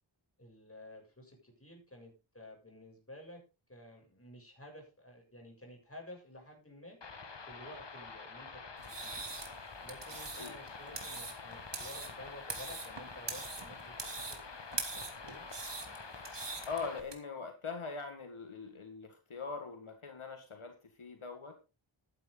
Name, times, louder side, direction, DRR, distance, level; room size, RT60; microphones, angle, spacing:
voice 1, 0.4-3.4 3.7-7.0 7.5-9.2 9.8-14.4 14.9-15.4, left 1 dB, 30° left, 1 dB, 7.2 m, -52 dB
sound 1, 7.0-17.0, left 4 dB, 60° left, 1.8 m, -47 dB
sound 2, 8.8-17.1, right 3 dB, 60° right, 2.9 m, -43 dB
voice 2, 16.7-21.5, left 4 dB, 85° left, 5 dB, 2.0 m, -42 dB
12.5 x 10.5 x 3.9 m, 0.29 s
wide cardioid pair, 65°, 48 cm